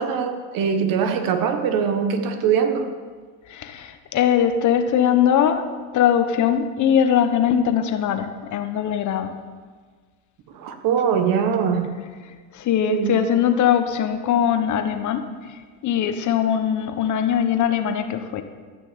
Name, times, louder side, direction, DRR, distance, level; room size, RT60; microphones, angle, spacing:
voice 1, 0.0-2.9 10.5-11.9 12.9-13.2, right 7 dB, 60° right, 7 dB, 1.6 m, -22 dB
voice 2, 3.5-5.6 5.9-9.3 12.5-15.2 15.8-18.4, left 9 dB, 50° left, 8 dB, 1.3 m, -21 dB
14.5 x 6.1 x 8.7 m, 1.5 s
cardioid pair, 120°, 38 cm